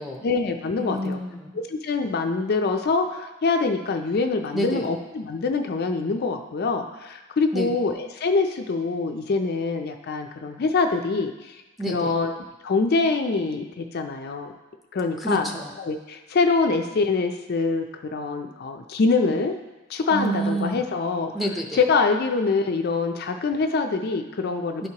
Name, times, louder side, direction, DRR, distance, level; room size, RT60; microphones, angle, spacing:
voice 1, 0.2-1.2 1.5-11.6 11.9-12.4 12.6-14.5 14.9-15.5 15.8-17.9 18.1-19.5 19.9-21.3 21.8-24.9, left 4 dB, 45° left, 5 dB, 0.4 m, -24 dB
voice 2, 0.8-1.6 4.5-4.9 7.5-7.7 11.8-12.2 15.2-15.7 20.1-20.8 21.3-21.8 24.8-24.9, right 1 dB, ahead, 0 dB, 0.5 m, -28 dB
11.0 x 4.5 x 2.8 m, 1.1 s
head